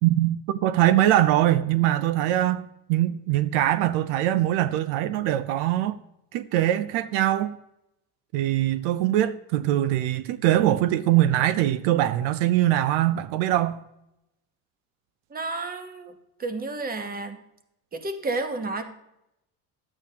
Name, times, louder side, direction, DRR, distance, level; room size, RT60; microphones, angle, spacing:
voice 1, 0.0-6.0 6.3-7.6 8.3-13.8, right 13 dB, 80° right, 0.6 m, -22 dB
voice 2, 15.3-16.1 16.4-17.4 17.9-18.8, right 3 dB, 20° right, 1.0 m, -31 dB
11.5 x 8.7 x 2.8 m
cardioid pair, 110°, 43 cm